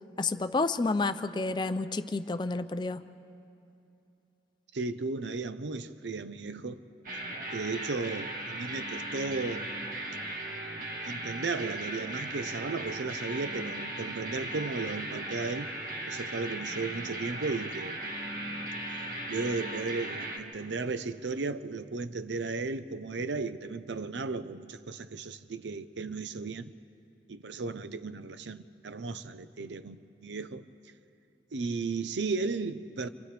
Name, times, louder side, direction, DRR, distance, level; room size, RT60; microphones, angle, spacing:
voice 1, 0.2-3.0, left 3 dB, 25° left, 0.4 m, -30 dB
voice 2, 4.7-6.8 7.5-9.7 11.0-15.7 16.1-18.0 19.3-26.7 27.3-30.6 31.5-33.1, right 3 dB, 85° right, 0.7 m, -35 dB
sound 1, 7.0-20.4, right 1 dB, 50° right, 1.8 m, -37 dB
29.0 x 27.0 x 3.4 m
head